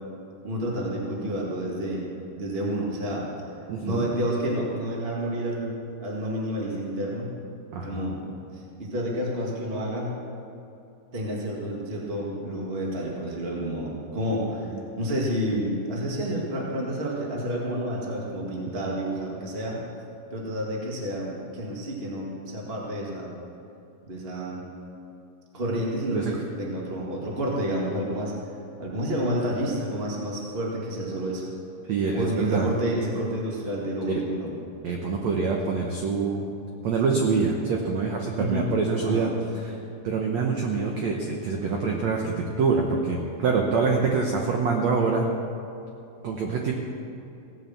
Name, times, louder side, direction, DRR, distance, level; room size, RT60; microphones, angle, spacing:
voice 1, 0.4-2.1 2.4-3.3 3.8-5.7 6.0-7.3 7.8-8.2 8.5-10.1 11.1-14.7 15.0-19.8 20.3-23.3 24.1-24.6 25.5-28.3 28.8-31.5 32.1-34.5 38.4-38.7 39.0-39.3, equal, 40° right, -3 dB, 0.8 m, -29 dB
voice 2, 3.7-4.1 7.7-8.1 14.7-14.8 26.1-26.3 31.9-32.7 34.1-34.2 34.8-36.5 36.8-39.8 40.0-45.3 46.2-46.7, right 4 dB, 85° right, 1 dB, 1.5 m, -25 dB
17.0 x 8.1 x 7.1 m, 2.7 s
omnidirectional pair, 4.6 m